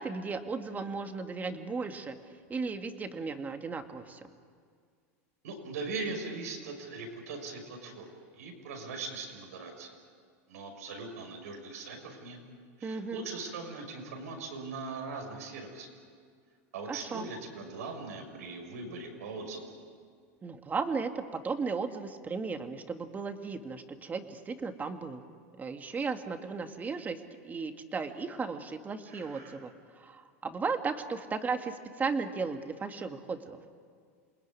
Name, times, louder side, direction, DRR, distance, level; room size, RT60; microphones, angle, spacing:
voice 1, 0.0-2.2 2.5-4.2 12.8-13.3 16.9-17.3 20.4-25.2 25.6-33.6, right 4 dB, 20° right, 6 dB, 2.1 m, -35 dB
voice 2, 5.4-8.1 8.3-9.9 10.5-12.4 12.8-15.9 16.7-19.7 29.1-29.6, right 3 dB, 85° right, 3 dB, 6.1 m, -40 dB
28.0 x 20.0 x 9.8 m, 2.1 s
supercardioid pair, 120°, 8 cm